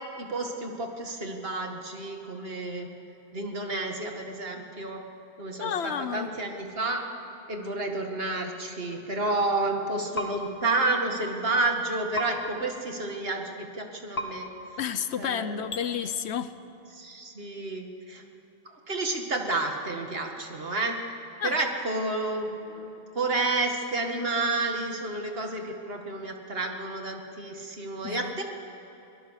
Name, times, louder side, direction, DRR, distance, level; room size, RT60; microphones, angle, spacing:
voice 1, 0.2-2.9 3.3-5.0 5.4-7.0 7.5-14.5 15.2-15.7 16.9-18.2 18.9-21.0 21.4-22.9 23.1-28.4, right 2 dB, 65° right, 3 dB, 2.2 m, -30 dB
voice 2, 5.6-6.3 14.8-16.5 21.4-21.6 28.0-28.3, left 8 dB, 80° left, 13 dB, 1.1 m, -31 dB
sound 1, 10.1-10.3 12.1-12.3 14.1-14.3 15.7-15.8, left 1 dB, 55° left, 2.1 m, -31 dB
23.0 x 18.0 x 6.5 m, 3.0 s
omnidirectional pair, 1.1 m